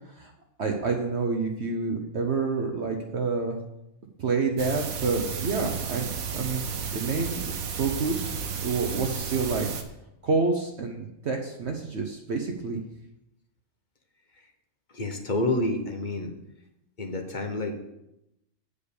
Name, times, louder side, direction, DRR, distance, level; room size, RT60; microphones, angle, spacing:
voice 1, 0.6-3.6 4.2-6.6 6.9-7.5 7.8-9.7 10.2-12.8, right 4 dB, 55° right, 2 dB, 1.1 m, -28 dB
sound 1, 4.6-9.8, right 6 dB, 90° right, 1.4 m, -33 dB
voice 2, 14.9-16.3 17.0-17.9, left 2 dB, 40° left, 4 dB, 1.0 m, -29 dB
8.3 x 5.1 x 6.9 m, 0.86 s
omnidirectional pair, 1.4 m